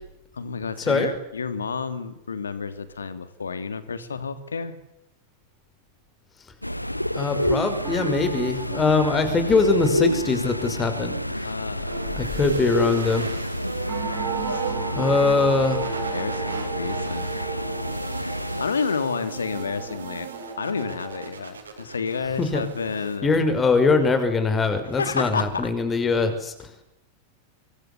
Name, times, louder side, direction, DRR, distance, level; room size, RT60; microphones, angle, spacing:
voice 1, 0.3-4.7 11.4-12.4 14.5-15.3 16.1-17.3 18.3-20.3 20.6-23.3 24.9-25.7, left 5 dB, 75° left, 12 dB, 2.9 m, -30 dB
sound 1, 6.6-18.6, equal, 90° left, 1.3 m, -28 dB
voice 2, 7.1-11.1 12.2-13.3 15.0-16.0 22.4-22.6 23.2-26.5, left 4 dB, 20° left, 8 dB, 5.9 m, -22 dB
sound 2, 7.8-13.2 13.9-21.3, right 10 dB, 35° right, 4.9 m, -37 dB
sound 3, 11.9-23.2, right 5 dB, 70° right, 6.5 m, -38 dB
26.0 x 24.0 x 8.4 m, 0.85 s
figure-of-eight pair, 90°, 0 cm